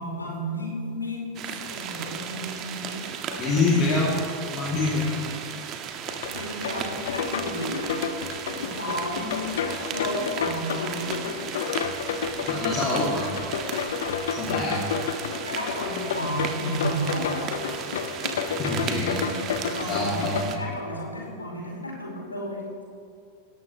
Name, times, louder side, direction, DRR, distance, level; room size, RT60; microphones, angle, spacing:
voice 1, 0.0-3.8 6.3-7.9 8.4-11.3 15.4-17.5 19.4-22.7, equal, 80° left, -3 dB, 4.7 m, -33 dB
sound 1, 1.3-20.6, right 8 dB, 35° right, 1.6 m, -35 dB
voice 2, 3.4-4.2 4.5-5.3 12.4-13.3 14.3-14.9 18.2-18.3 18.6-19.3 19.9-20.6, left 3 dB, 35° left, -4 dB, 2.8 m, -26 dB
sound 2, 6.1-20.4, left 6 dB, 60° left, 1.0 m, -31 dB
20.0 x 18.5 x 3.2 m, 2.4 s
figure-of-eight pair, 90°, 0 cm